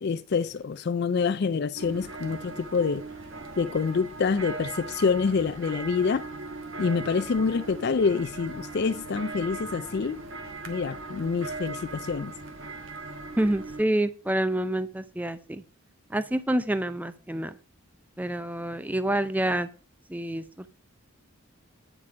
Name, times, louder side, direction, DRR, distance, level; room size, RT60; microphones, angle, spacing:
voice 1, 0.0-3.0 3.6-6.2 6.8-10.2 10.7-12.3, left 5 dB, 50° left, 0.4 m, -26 dB
sound 1, 1.7-13.8, right 3 dB, 65° right, 1.3 m, -39 dB
voice 2, 13.4-15.6 16.1-17.6 18.2-19.7 20.1-20.7, right 1 dB, 10° right, 0.4 m, -27 dB
8.9 x 6.0 x 5.0 m
head